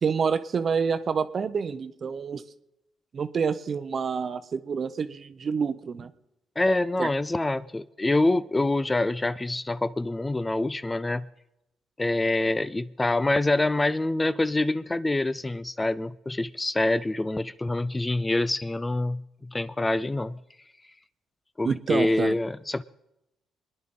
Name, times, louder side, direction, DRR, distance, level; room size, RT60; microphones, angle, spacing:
voice 1, 0.0-2.4 3.1-6.1 7.0-7.1 21.6-22.4, right 6 dB, 50° right, 12 dB, 0.7 m, -28 dB
voice 2, 6.6-11.3 12.0-20.4 21.6-22.8, left 2 dB, 20° left, 16 dB, 0.4 m, -26 dB
24.5 x 10.0 x 3.7 m, 0.90 s
supercardioid pair, 65°, 0 cm